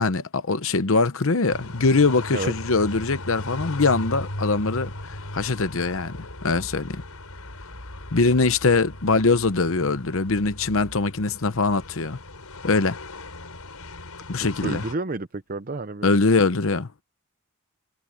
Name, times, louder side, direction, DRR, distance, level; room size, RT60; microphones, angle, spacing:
voice 1, 0.0-6.2 6.4-7.0 8.1-12.2 12.6-13.0 14.3-14.8 16.0-16.9, left 3 dB, 65° left, 0.9 m, -22 dB
sound 1, 1.5-14.9, left 1 dB, 90° left, 5.9 m, -37 dB
voice 2, 14.4-16.1, right 2 dB, 40° right, 0.7 m, -30 dB
head